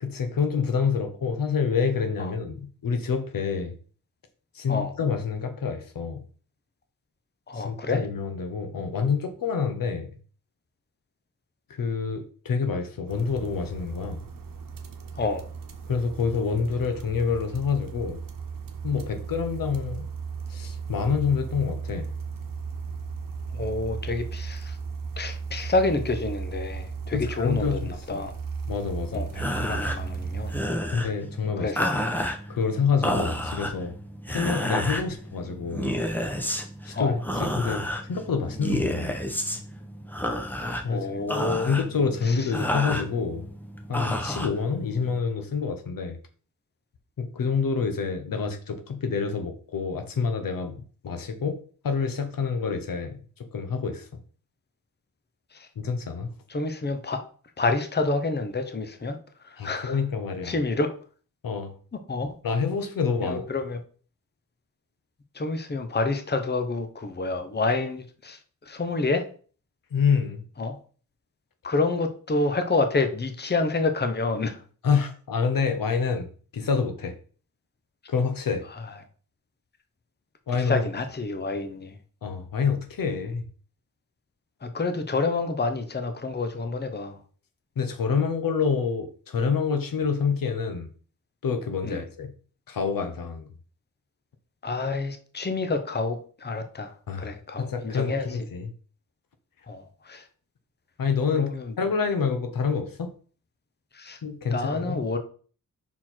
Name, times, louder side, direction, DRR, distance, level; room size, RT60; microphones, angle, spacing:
voice 1, 0.0-3.7 4.5-6.2 7.5-10.1 11.7-14.2 15.9-18.2 18.8-20.1 20.5-22.1 27.1-28.2 28.7-29.3 30.9-31.7 32.5-33.9 34.3-36.0 36.8-37.8 38.1-39.2 40.8-41.2 41.6-43.5 43.9-46.2 47.2-51.6 51.8-53.2 53.5-54.1 55.8-56.3 59.6-60.6 61.4-61.7 62.4-63.4 69.9-70.4 74.8-77.2 78.1-78.7 80.5-80.8 82.2-83.5 87.8-90.9 91.4-92.3 92.7-93.5 97.1-98.7 101.0-101.5 101.8-103.1 104.2-105.0, left 5 dB, 75° left, 1.0 m, -27 dB
voice 2, 7.5-8.0 15.2-15.4 23.5-24.8 25.2-28.3 29.1-30.5 31.6-31.9 34.3-34.4 36.9-37.2 40.8-41.8 42.2-42.5 55.5-55.7 56.5-57.2 57.6-59.2 59.4-60.0 60.4-60.9 62.1-62.3 63.2-63.8 65.3-69.2 70.6-70.8 71.6-74.6 80.6-81.9 84.6-87.2 91.8-92.0 94.6-96.9 97.2-98.3 99.7-100.2 101.4-101.7 103.9-104.2 104.5-105.2, left 3 dB, 30° left, 0.9 m, -28 dB
sound 1, 13.1-30.6, right 5 dB, 75° right, 1.0 m, -36 dB
sound 2, 29.3-45.2, equal, 5° left, 1.0 m, -31 dB
6.0 x 4.3 x 4.5 m
wide cardioid pair, 90°, 34 cm